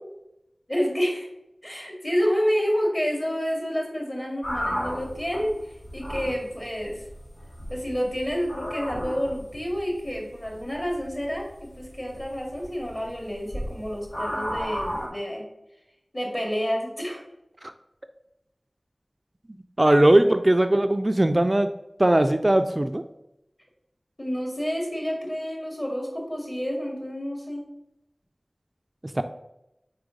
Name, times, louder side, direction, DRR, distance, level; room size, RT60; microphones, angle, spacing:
voice 1, 0.7-1.3 1.6-5.6 5.9-7.0 7.7-15.4 16.1-17.2 20.2-20.3 24.2-27.6, equal, 30° left, 0 dB, 2.1 m, -29 dB
squeeky tree, 4.4-15.1, equal, 70° left, 2.1 m, -35 dB
voice 2, 19.8-21.7 22.0-23.0 29.2-29.3, right 1 dB, 35° right, 7 dB, 0.3 m, -19 dB
4.8 x 4.4 x 5.1 m, 0.87 s
wide cardioid pair, 45°, 0 cm